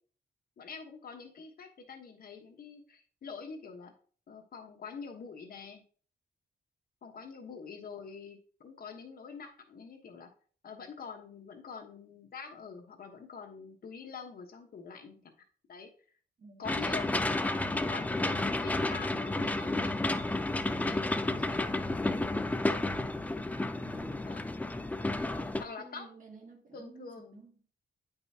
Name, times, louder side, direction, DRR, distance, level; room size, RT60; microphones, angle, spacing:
voice 1, 0.6-3.9 4.3-5.8 7.0-10.3 10.6-15.3 15.7-15.9 16.6-20.3 20.9-21.2 21.6-22.1 24.2-24.5 25.6-26.1 26.7-27.4, left 5 dB, 55° left, 1.2 m, -46 dB
voice 2, 16.4-16.7 22.3-23.3 23.8-24.3 25.3-27.5, right 3 dB, 45° right, 1.6 m, -53 dB
sound 1, 16.6-25.6, left 2 dB, 10° left, 0.3 m, -31 dB
9.2 x 5.4 x 2.8 m
wide cardioid pair, 165°, 18 cm